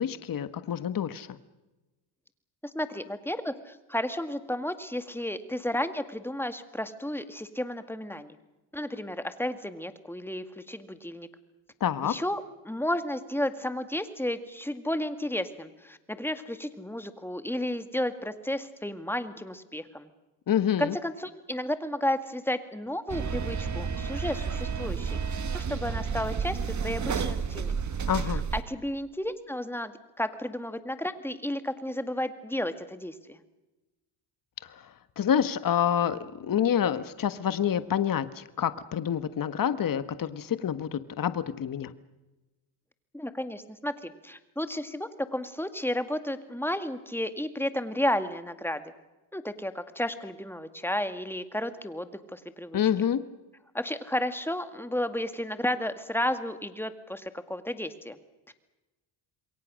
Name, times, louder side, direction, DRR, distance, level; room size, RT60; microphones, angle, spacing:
voice 1, 0.0-1.4 11.8-12.1 20.5-20.9 28.0-28.4 34.7-41.9 52.7-53.2, left 9 dB, 40° left, 13 dB, 1.4 m, -27 dB
voice 2, 2.7-8.4 8.7-11.3 12.0-20.1 20.8-25.2 25.5-26.6 26.8-27.7 28.5-29.9 30.2-33.4 43.1-48.8 49.3-52.8 53.7-58.2 58.5-58.6, left 1 dB, 5° left, 10 dB, 2.1 m, -32 dB
sound 1, 23.1-28.6, right 6 dB, 35° right, 1.9 m, -31 dB
27.5 x 22.5 x 6.4 m, 1.1 s
cardioid pair, 100°, 50 cm